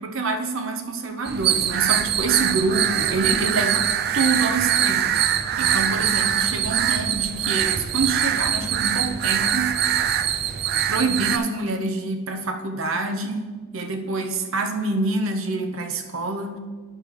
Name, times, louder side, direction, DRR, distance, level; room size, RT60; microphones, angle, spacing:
voice 1, 0.0-5.2 5.6-9.8 10.9-16.6, right 3 dB, 65° right, 6 dB, 0.7 m, -26 dB
sound 1, 1.3-11.4, right 9 dB, 45° right, 0.3 m, -23 dB
9.8 x 6.5 x 3.2 m, 1.4 s
head